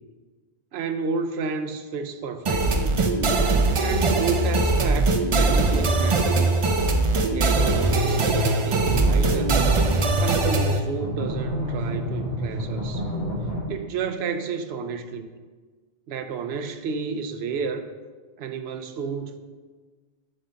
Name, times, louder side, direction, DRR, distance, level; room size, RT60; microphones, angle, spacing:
voice 1, 0.7-3.0 3.8-6.5 7.3-9.6 10.2-13.0 13.7-15.3 16.1-17.9 18.4-19.4, right 5 dB, 85° right, 8 dB, 0.8 m, -31 dB
sound 1, 2.5-10.8, right 2 dB, 40° right, 0.5 m, -21 dB
sound 2, 7.9-13.6, right 1 dB, 85° left, 1.8 m, -30 dB
7.6 x 3.8 x 5.6 m, 1.4 s
omnidirectional pair, 1.0 m